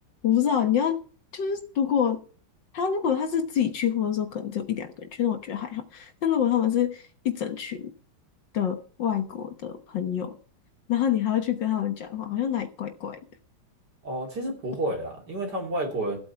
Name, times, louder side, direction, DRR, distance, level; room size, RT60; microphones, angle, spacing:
voice 1, 0.2-1.0 1.3-2.2 2.7-7.9 8.5-10.4 10.9-13.2, left 9 dB, 60° left, 6 dB, 1.8 m, -26 dB
voice 2, 14.0-16.2, right 1 dB, 50° right, 1 dB, 3.4 m, -30 dB
15.0 x 8.5 x 4.5 m, 0.41 s
omnidirectional pair, 2.4 m